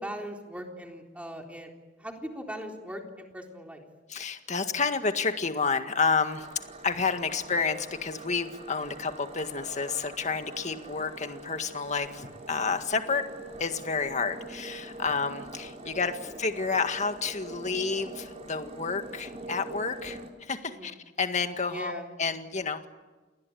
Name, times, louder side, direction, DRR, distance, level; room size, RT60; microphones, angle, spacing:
voice 1, 0.0-1.7 2.0-3.9 7.2-7.3 15.8-15.9 20.7-21.0 21.6-22.1, equal, 5° right, 2 dB, 3.8 m, -40 dB
voice 2, 4.1-6.5 6.8-13.3 13.6-22.9, left 5 dB, 40° left, 7 dB, 1.8 m, -30 dB
sound 1, 6.3-20.3, right 2 dB, 40° right, 3.7 m, -44 dB
28.5 x 20.0 x 9.4 m, 1.2 s
head